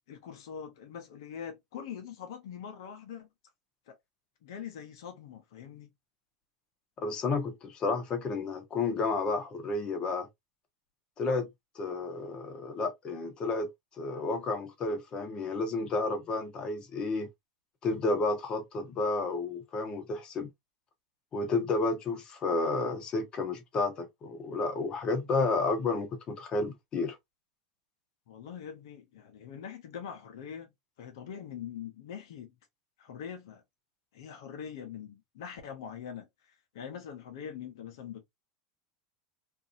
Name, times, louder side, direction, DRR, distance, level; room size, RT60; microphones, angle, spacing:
voice 1, 0.1-3.3 3.9-4.0 4.4-5.9 28.3-30.7 31.0-32.5 33.0-33.6 34.1-38.2, left 8 dB, 70° left, 0.7 m, -43 dB
voice 2, 7.0-10.3 11.2-11.5 11.7-13.7 14.0-17.3 17.8-20.5 21.3-27.2, left 3 dB, 35° left, 0.9 m, -31 dB
2.6 x 2.5 x 2.5 m
hypercardioid pair, 95°, 2 cm